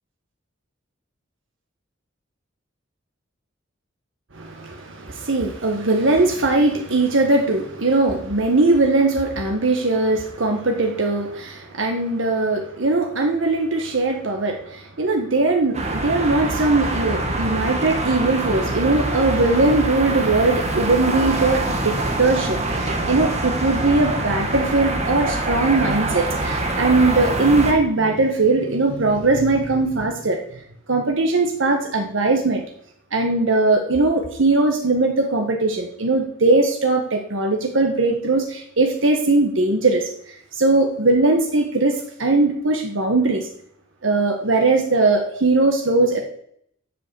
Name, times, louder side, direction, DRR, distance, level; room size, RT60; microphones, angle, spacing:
voice 1, 4.3-30.4 30.9-32.6 33.1-40.0 40.5-43.5 44.0-46.2, right 2 dB, 80° right, 2 dB, 1.3 m, -20 dB
sound 1, 15.7-27.7, right 2 dB, 35° right, 1.6 m, -24 dB
8.4 x 7.2 x 6.7 m, 0.67 s
head